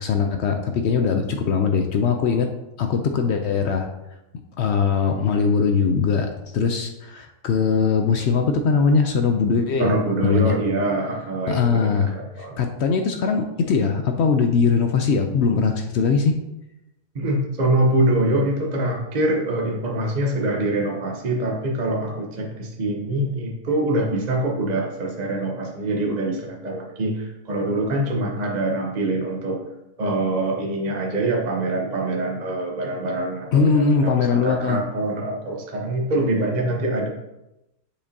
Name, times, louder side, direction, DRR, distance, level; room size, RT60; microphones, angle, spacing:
voice 1, 0.0-2.5 2.8-3.9 4.6-9.9 10.2-10.6 11.5-12.1 12.4-16.4 33.5-34.8, left 5 dB, 70° left, 5 dB, 0.6 m, -21 dB
voice 2, 9.8-12.6 17.1-29.6 30.0-37.1, right 2 dB, 40° right, -1 dB, 0.7 m, -24 dB
6.9 x 5.1 x 2.7 m, 0.93 s
omnidirectional pair, 1.6 m